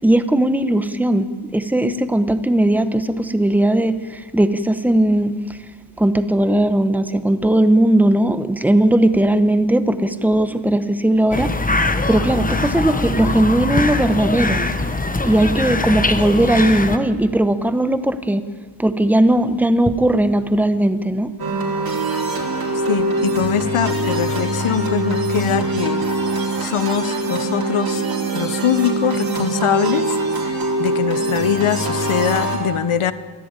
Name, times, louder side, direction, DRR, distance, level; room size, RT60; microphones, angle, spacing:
voice 1, 0.0-5.3 6.0-11.5 12.1-14.6 15.2-18.5 18.8-21.3, right 1 dB, 5° right, 11 dB, 0.9 m, -18 dB
sound 1, 11.3-17.0, left 2 dB, 15° left, 1.0 m, -22 dB
sound 2, 21.4-32.6, right 2 dB, 45° right, 3.9 m, -23 dB
voice 2, 22.9-26.1 26.6-28.0 28.3-33.1, left 8 dB, 85° left, 14 dB, 1.1 m, -22 dB
24.0 x 15.5 x 9.0 m, 1.5 s
wide cardioid pair, 165°, 49 cm